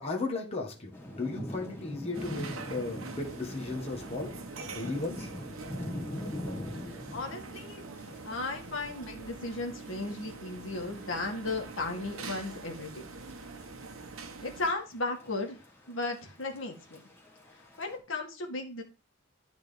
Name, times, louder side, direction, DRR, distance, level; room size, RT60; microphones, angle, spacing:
voice 1, 0.0-4.3 4.6-5.3, left 3 dB, 30° left, 0 dB, 1.7 m, -35 dB
Thunder / Rain, 0.9-18.0, left 1 dB, 10° left, 2.1 m, -44 dB
sound 1, 2.1-14.7, right 3 dB, 80° right, 1.2 m, -44 dB
voice 2, 7.1-7.8 8.2-13.1 14.4-15.6 15.9-17.0 17.8-18.8, left 2 dB, 70° left, 1 dB, 2.1 m, -35 dB
11.5 x 4.1 x 5.2 m, 0.34 s
head